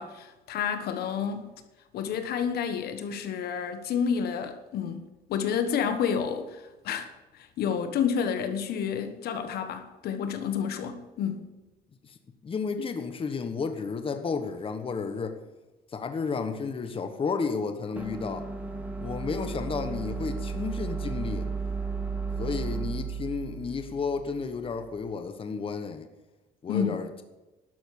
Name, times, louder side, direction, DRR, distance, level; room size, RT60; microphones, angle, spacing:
voice 1, 0.0-1.5 1.9-5.0 5.3-11.5 26.7-27.0, left 7 dB, 70° left, 1.4 m, -30 dB
voice 2, 12.4-15.4 15.9-18.5 19.0-21.5 22.4-26.1 26.6-27.2, left 5 dB, 30° left, 1.2 m, -32 dB
sound 1, 18.0-25.0, right 4 dB, 10° right, 1.9 m, -34 dB
12.0 x 7.1 x 8.4 m
cardioid pair, 110°, 17 cm